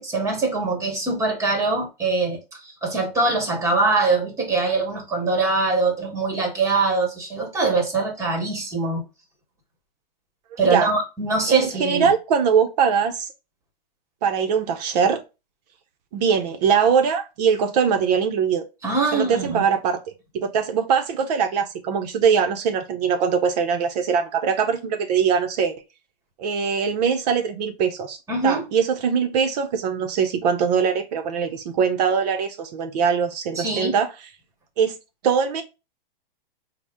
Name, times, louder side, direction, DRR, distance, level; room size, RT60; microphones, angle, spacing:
voice 1, 0.0-9.0 10.6-12.1 18.8-19.6 28.3-28.6 33.6-34.0, right 3 dB, 10° right, 1.0 m, -23 dB
voice 2, 10.5-10.9 11.5-13.3 14.2-15.2 16.1-18.6 19.1-20.0 20.3-25.7 26.4-28.2 28.4-34.1 34.8-35.0 35.2-35.6, right 6 dB, 45° right, 0.5 m, -22 dB
4.1 x 2.0 x 3.4 m
hypercardioid pair, 145°, 29 cm